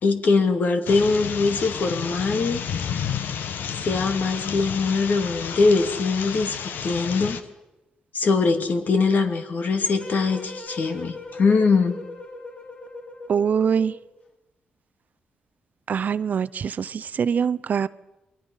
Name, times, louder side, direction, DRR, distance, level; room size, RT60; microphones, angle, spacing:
voice 1, 0.0-2.6 3.8-6.5 6.8-7.4 8.1-12.0, left 4 dB, 60° left, 6 dB, 2.6 m, -22 dB
sound 1, 0.9-7.4, left 7 dB, 80° left, 1.3 m, -31 dB
sound 2, 9.8-14.1, left 3 dB, 45° left, 3.9 m, -40 dB
voice 2, 13.3-13.9 15.9-17.9, right 7 dB, 60° right, 17 dB, 0.7 m, -23 dB
29.0 x 21.5 x 5.6 m, 0.98 s
cardioid pair, 75°, 3 cm